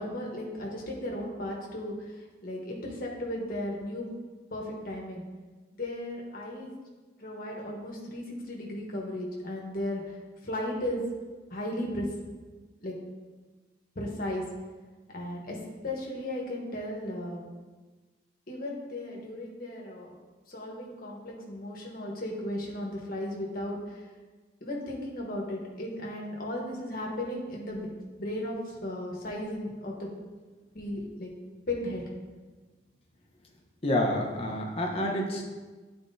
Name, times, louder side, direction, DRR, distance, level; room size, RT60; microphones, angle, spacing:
voice 1, 0.0-2.1 2.4-4.1 4.5-5.2 5.7-6.7 7.2-10.1 10.4-11.0 11.5-12.1 12.8-12.9 13.9-14.4 15.1-15.6 15.8-17.5 18.5-20.1 20.5-23.8 24.6-27.9 28.2-30.1 30.7-31.3 31.7-32.0, left 1 dB, 50° left, -1 dB, 1.3 m, -35 dB
voice 2, 33.8-35.4, left 1 dB, 30° left, 0 dB, 0.9 m, -28 dB
9.4 x 4.4 x 2.7 m, 1.3 s
head